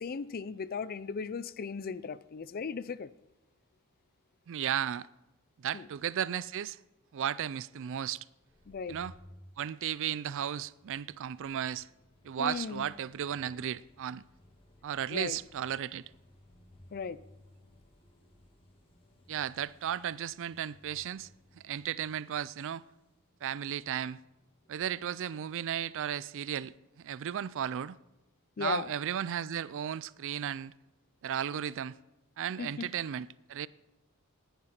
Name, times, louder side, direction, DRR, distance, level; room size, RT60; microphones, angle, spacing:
voice 1, 0.0-3.1 5.7-5.9 8.7-9.0 12.4-12.8 15.1-15.4 16.9-17.2 28.6-28.9 32.6-32.9, left 5 dB, 45° left, 0.4 m, -37 dB
voice 2, 4.5-5.1 5.6-6.8 7.1-8.2 8.9-9.1 9.6-11.9 12.2-14.2 14.8-16.1 19.3-21.3 21.6-22.8 23.4-24.2 24.7-28.0 28.6-30.7 31.2-32.0 32.4-33.7, right 9 dB, 60° right, 0.4 m, -35 dB
sound 1, 8.3-25.7, left 1 dB, 25° left, 1.9 m, -60 dB
19.0 x 10.5 x 4.4 m
head